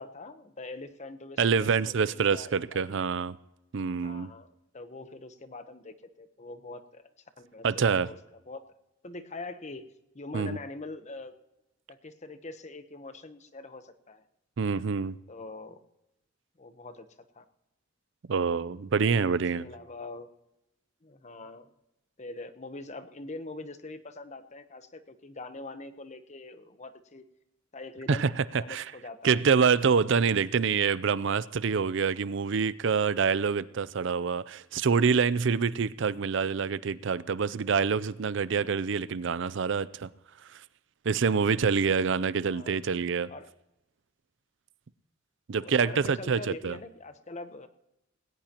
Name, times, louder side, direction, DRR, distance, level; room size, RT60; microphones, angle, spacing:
voice 1, 0.0-3.0 4.0-4.5 4.7-7.0 7.4-8.2 8.5-8.6 9.0-9.9 10.1-11.3 11.9-14.2 15.3-15.8 16.6-17.1 17.3-17.4 19.6-20.3 21.0-21.7 22.2-27.3 27.7-28.3 28.6-29.4 30.2-30.3 42.4-42.8 43.3-43.5 45.5-47.7, left 2 dB, 35° left, 1.0 m, -43 dB
voice 2, 1.4-3.4 3.7-4.3 7.6-8.1 10.3-10.6 14.6-15.2 18.3-19.7 28.1-28.9 29.2-40.1 40.5-40.6 41.1-43.3 45.5-46.8, right 5 dB, 65° right, 0.5 m, -26 dB
19.0 x 17.5 x 3.0 m
head